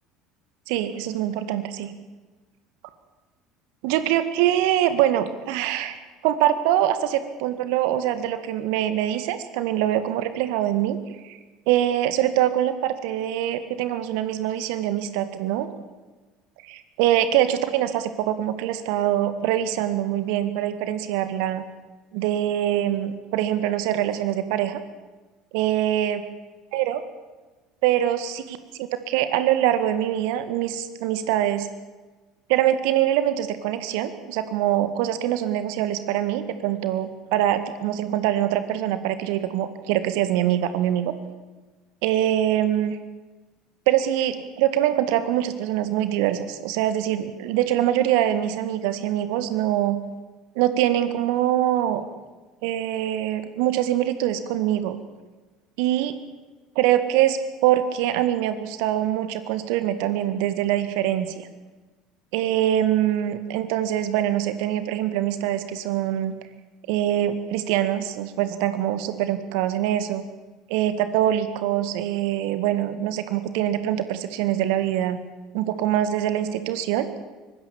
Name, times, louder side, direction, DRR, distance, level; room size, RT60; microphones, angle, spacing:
voice 1, 0.7-1.9 3.8-6.0 6.2-11.0 11.2-11.4 11.7-15.7 16.6-21.6 22.1-24.8 25.5-26.2 26.7-27.0 27.8-31.7 32.5-41.1 42.0-43.0 43.9-50.0 50.6-52.0 52.6-55.0 55.8-56.1 56.8-61.5 62.3-66.3 66.9-70.3 70.7-75.2 75.5-77.1, right 12 dB, 60° right, 11 dB, 2.0 m, -24 dB
24.0 x 20.0 x 7.3 m, 1.3 s
figure-of-eight pair, 65°, 0 cm